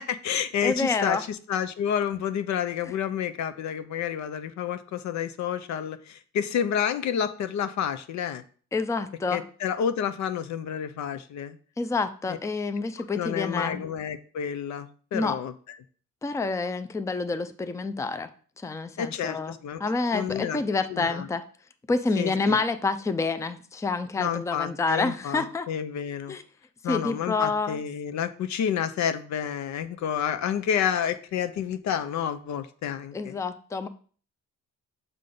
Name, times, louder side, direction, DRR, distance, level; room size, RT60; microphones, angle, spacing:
voice 1, 0.0-8.4 9.3-11.6 12.3-12.4 13.1-15.5 19.0-19.8 20.1-20.6 20.9-21.3 22.1-22.6 24.2-26.4 26.8-33.4, left 8 dB, 65° left, 11 dB, 0.6 m, -29 dB
voice 2, 0.6-1.2 8.7-9.4 11.8-13.8 15.1-15.4 16.2-18.3 18.6-19.5 19.8-21.4 21.9-25.7 26.3-26.4 26.9-27.8 33.1-33.9, left 3 dB, 10° left, 10 dB, 0.4 m, -28 dB
6.7 x 3.7 x 3.8 m, 0.43 s
cardioid pair, 90°, 30 cm